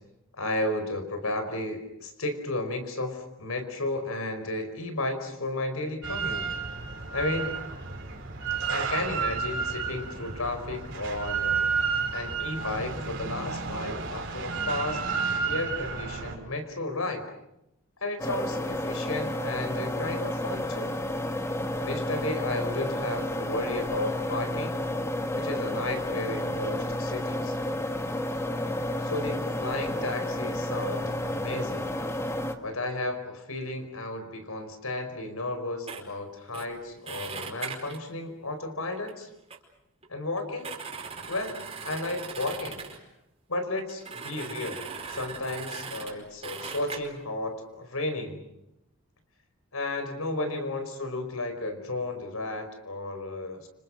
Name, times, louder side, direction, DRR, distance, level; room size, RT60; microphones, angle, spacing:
voice 1, 0.3-6.5 7.1-7.6 8.7-11.6 12.1-15.0 15.4-17.2 18.0-21.0 21.8-24.8 25.3-27.6 29.0-31.9 32.6-39.3 40.1-40.7 41.3-42.8 43.5-44.8 45.1-48.4 49.7-53.7, left 2 dB, 80° left, 8 dB, 5.0 m, -33 dB
Drill, 6.0-16.4, right 5 dB, 55° right, 5.0 m, -31 dB
sound 1, 18.2-32.5, left 1 dB, 10° left, 1.6 m, -31 dB
sound 2, 35.9-36.0 36.5-36.7 37.1-38.0 39.0-39.1 39.5-39.6 40.0-40.1 40.4-43.0 43.8-46.1 46.4-47.0, right 5 dB, 30° right, 4.9 m, -39 dB
29.5 x 27.5 x 6.5 m, 0.85 s
head